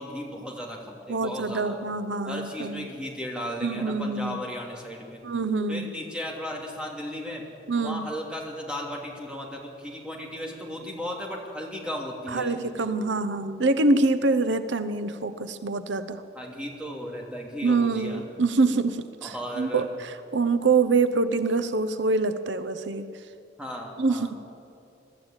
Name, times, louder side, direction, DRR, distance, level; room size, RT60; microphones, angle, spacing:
voice 1, 0.0-1.8 2.2-5.2 5.7-7.4 7.8-12.5 16.3-18.2 19.2-19.8 23.6-24.3, equal, 5° right, -2 dB, 2.8 m, -35 dB
voice 2, 1.1-2.9 3.6-4.4 5.2-5.9 7.7-8.1 12.3-16.2 17.6-23.2 24.0-24.4, right 3 dB, 80° right, 11 dB, 0.8 m, -25 dB
22.5 x 13.0 x 8.9 m, 2.7 s
head